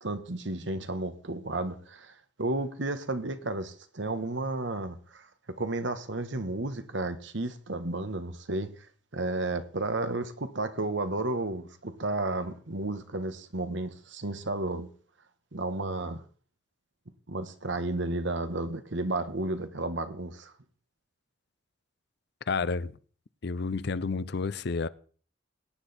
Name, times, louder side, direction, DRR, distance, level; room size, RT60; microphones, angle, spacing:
voice 1, 0.0-5.3 5.6-8.7 9.1-14.9 15.5-16.2 17.3-20.5, right 2 dB, 65° right, 1.3 m, -32 dB
voice 2, 22.5-22.9 23.4-24.9, left 4 dB, 55° left, 0.6 m, -30 dB
17.5 x 10.0 x 4.2 m
head